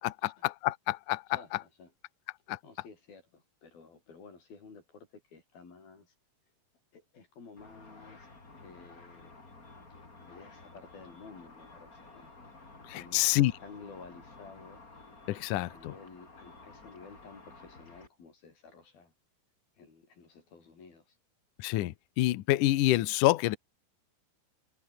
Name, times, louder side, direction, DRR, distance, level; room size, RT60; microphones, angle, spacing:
voice 1, 0.0-1.2 2.5-2.6 13.1-13.5 15.3-15.9 21.6-23.6, left 16 dB, 75° left, 1.9 m, -27 dB
voice 2, 1.3-1.9 2.6-6.1 6.9-9.3 9.9-12.3 12.6-14.8 15.7-19.1 19.8-21.2, left 4 dB, 60° left, 8.3 m, -53 dB
Car / Traffic noise roadway noise / Engine, 7.6-18.1, left 3 dB, 20° left, 4.0 m, -53 dB
omnidirectional pair, 4.9 m